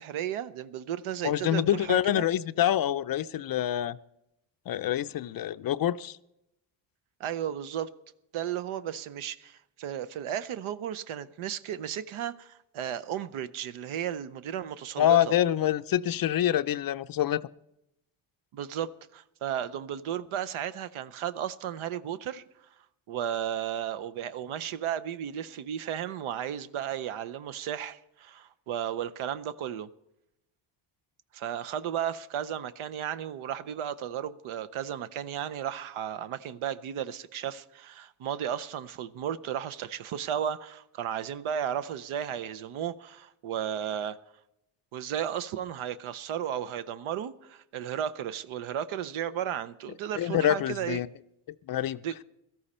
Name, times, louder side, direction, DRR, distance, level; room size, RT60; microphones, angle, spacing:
voice 1, 0.0-2.2 7.2-7.9 8.3-15.3 18.5-22.4 23.1-29.9 31.3-44.2 44.9-51.0 52.0-52.1, right 9 dB, 75° right, 0.8 m, -34 dB
voice 2, 1.2-4.0 4.7-6.2 15.0-17.4 50.2-51.1 51.7-52.0, left 11 dB, 45° left, 0.4 m, -26 dB
17.0 x 13.0 x 4.3 m
cardioid pair, 100°, 49 cm